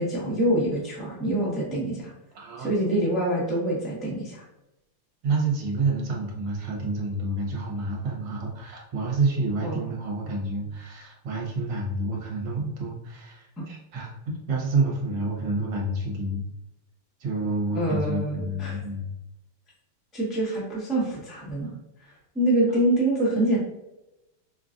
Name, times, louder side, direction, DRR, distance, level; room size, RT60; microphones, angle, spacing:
voice 1, 0.0-2.1 2.6-4.4 9.6-9.8 17.7-18.8 20.1-21.7 22.3-23.6, right 1 dB, ahead, -6 dB, 0.7 m, -25 dB
voice 2, 2.3-2.7 5.2-16.4 17.2-19.1, right 2 dB, 60° right, -2 dB, 1.6 m, -28 dB
5.6 x 2.4 x 2.5 m, 0.94 s
omnidirectional pair, 2.4 m